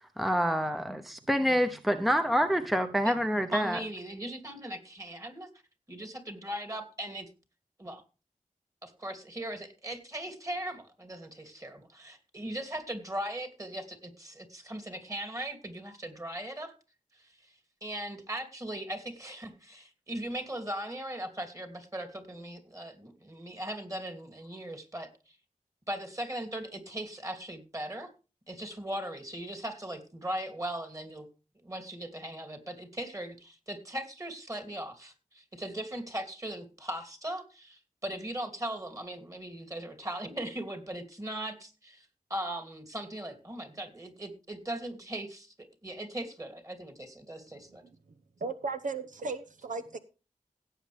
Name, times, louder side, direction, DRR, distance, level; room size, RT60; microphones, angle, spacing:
voice 1, 0.0-3.8, equal, ahead, 7 dB, 0.8 m, -27 dB
voice 2, 3.5-5.5 5.9-7.3 7.8-8.0 8.8-16.7 17.1-17.5 17.8-25.4 25.9-28.1 28.5-31.3 31.6-47.8, right 1 dB, 25° right, 6 dB, 2.8 m, -39 dB
voice 3, 48.4-50.0, right 3 dB, 75° right, 8 dB, 0.9 m, -35 dB
17.0 x 8.2 x 3.4 m, 0.33 s
wide cardioid pair, 70°, 14 cm